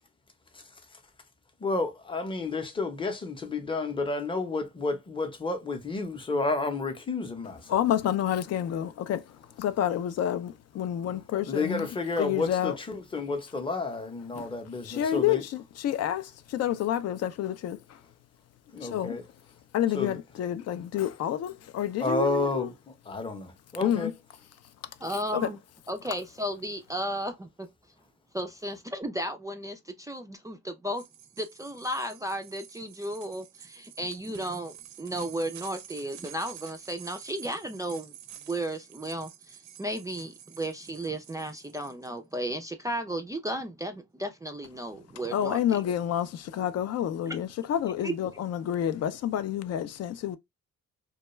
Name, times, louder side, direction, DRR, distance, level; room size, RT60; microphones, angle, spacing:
voice 1, 0.5-1.0 1.6-7.8 11.5-15.4 18.7-19.2 19.9-20.2 22.0-24.1, left 3 dB, 15° left, 0.7 m, -31 dB
voice 2, 7.7-9.3 9.6-11.9 12.2-12.7 14.4-14.5 14.8-17.8 18.8-19.2 19.7-22.7 23.8-24.1 25.3-25.5 45.3-50.4, left 10 dB, 60° left, 0.4 m, -29 dB
voice 3, 25.0-25.6 25.9-27.7 28.3-31.0 31.4-38.1 38.5-45.8 47.3-47.4 48.0-48.1, right 1 dB, 10° right, 0.3 m, -34 dB
sound 1, 30.9-42.1, right 10 dB, 65° right, 0.5 m, -49 dB
2.3 x 2.2 x 2.9 m
cardioid pair, 90°, 30 cm